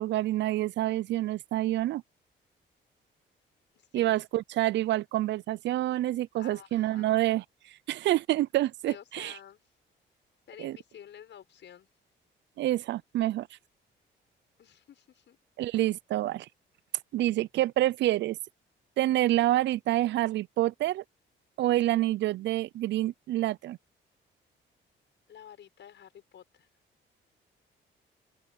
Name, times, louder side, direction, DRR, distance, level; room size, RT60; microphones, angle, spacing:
voice 1, 0.0-2.0 3.9-7.4 7.9-9.3 10.6-10.8 12.6-13.5 15.6-16.5 17.1-18.4 19.0-21.0 21.6-23.8, right 15 dB, 65° right, 0.4 m, -27 dB
voice 2, 3.8-4.2 6.4-7.2 8.9-9.6 10.5-11.9 14.6-15.4 25.3-26.7, left 9 dB, 65° left, 6.9 m, -50 dB
open air
cardioid pair, 90°, 20 cm